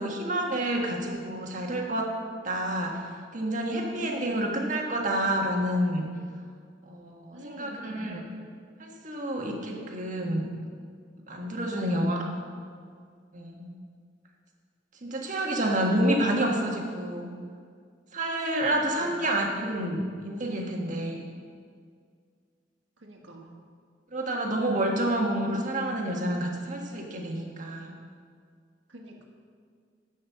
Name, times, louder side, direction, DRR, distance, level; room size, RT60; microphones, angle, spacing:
voice 1, 0.0-2.2 2.4-6.1 6.9-8.2 8.8-10.5 11.3-12.2 13.3-13.7 15.0-17.3 18.1-21.2 24.1-27.9, right 1 dB, 45° right, 0 dB, 1.5 m, -29 dB
voice 2, 4.0-4.5 7.3-8.1 11.7-12.4 18.7-19.2 23.0-23.5 28.9-29.2, right 1 dB, 80° right, 1 dB, 1.7 m, -45 dB
11.0 x 6.3 x 7.3 m, 2.1 s
head